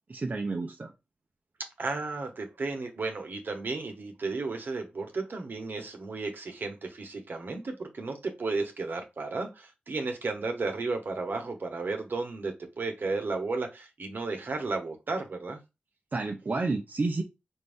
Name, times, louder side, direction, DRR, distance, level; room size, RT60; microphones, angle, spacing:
voice 1, 0.1-0.9 16.1-17.2, right 3 dB, 50° right, 0.7 m, -30 dB
voice 2, 1.8-15.6, right 3 dB, 70° right, 1.1 m, -33 dB
4.3 x 2.6 x 3.5 m
cardioid pair, 50°, 4 cm